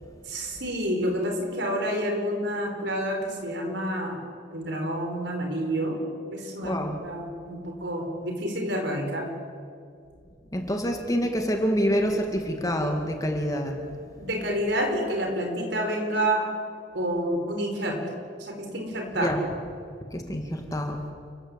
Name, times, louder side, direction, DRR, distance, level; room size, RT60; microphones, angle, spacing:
voice 1, 0.3-4.2 4.5-6.0 6.3-6.7 7.0-9.3 14.2-16.4 16.9-18.0 18.4-19.4, equal, 70° right, 3 dB, 4.8 m, -28 dB
voice 2, 6.6-7.1 10.5-13.9 19.2-19.4 20.1-21.1, equal, 20° left, 3 dB, 2.1 m, -27 dB
29.0 x 15.0 x 8.2 m, 2.3 s
head